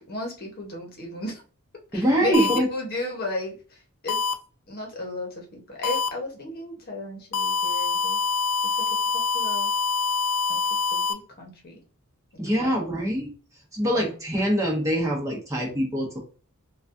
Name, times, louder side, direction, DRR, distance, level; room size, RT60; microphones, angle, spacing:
voice 1, 0.1-1.4 1.9-3.8 4.0-4.2 4.7-8.2 8.6-8.9 9.1-9.7 10.5-11.8 12.5-12.8 13.8-14.1, left 2 dB, 45° left, 1 dB, 1.0 m, -34 dB
voice 2, 1.9-2.7 12.4-13.3 13.7-16.2, equal, 15° right, -2 dB, 1.0 m, -24 dB
sound 1, 2.3-2.6 4.1-4.3 5.8-6.1 7.3-11.1, left 5 dB, 85° left, 0.4 m, -25 dB
4.0 x 2.3 x 2.5 m, 0.37 s
head